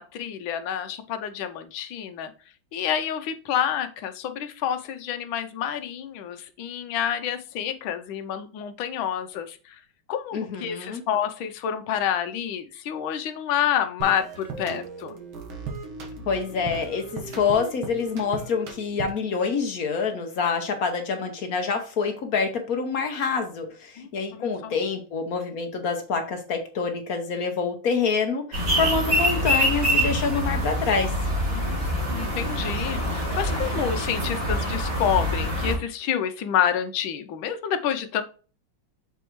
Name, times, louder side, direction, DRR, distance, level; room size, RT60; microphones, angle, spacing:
voice 1, 0.0-2.3 2.7-9.8 10.1-15.2 24.0-24.8 31.5-38.2, left 9 dB, 80° left, 8 dB, 1.5 m, -28 dB
voice 2, 10.3-11.0 16.3-31.1, left 5 dB, 55° left, 4 dB, 1.1 m, -26 dB
sound 1, 14.0-19.3, right 4 dB, 80° right, 2.1 m, -37 dB
sound 2, 28.5-35.8, equal, 55° right, 4.0 m, -25 dB
7.0 x 4.6 x 3.1 m, 0.37 s
omnidirectional pair, 2.2 m